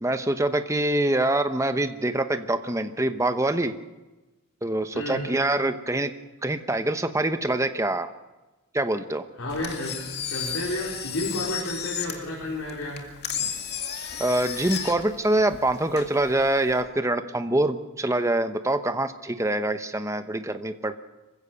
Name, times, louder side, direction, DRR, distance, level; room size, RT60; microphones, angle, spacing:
voice 1, 0.0-3.7 4.6-6.1 6.4-8.1 8.7-9.2 14.2-20.9, right 1 dB, 15° right, 9 dB, 0.9 m, -25 dB
voice 2, 4.9-5.4 9.4-10.0 10.3-13.1, left 1 dB, 80° left, -4 dB, 4.3 m, -31 dB
Engine, 9.5-16.8, left 8 dB, 50° left, 2.2 m, -34 dB
26.0 x 15.5 x 6.8 m, 1.1 s
head